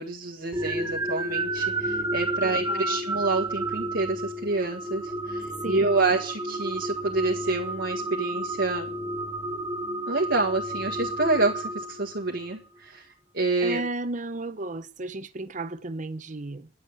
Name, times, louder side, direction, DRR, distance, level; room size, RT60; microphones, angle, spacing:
voice 1, 0.0-8.9 10.1-13.1 13.3-13.8, right 3 dB, 80° right, 1.7 m, -28 dB
sound 1, 0.5-12.5, right 1 dB, 20° right, 1.7 m, -31 dB
voice 2, 2.4-3.0 5.6-6.0 13.6-16.7, right 2 dB, 45° right, 0.9 m, -34 dB
11.0 x 7.5 x 9.7 m
head